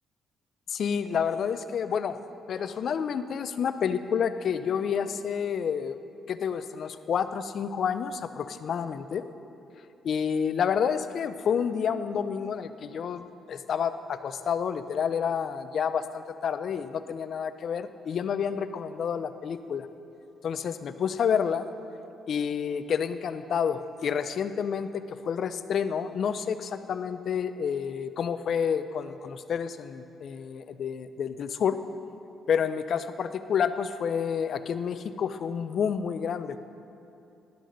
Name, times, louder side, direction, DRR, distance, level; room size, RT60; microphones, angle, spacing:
voice 1, 0.7-2.2 2.5-6.0 6.3-9.2 10.0-19.9 20.4-21.7 22.3-31.8 32.5-36.6, left 7 dB, 60° left, 12 dB, 0.4 m, -29 dB
11.5 x 6.5 x 3.9 m, 2.8 s
cardioid pair, 90°, 0 cm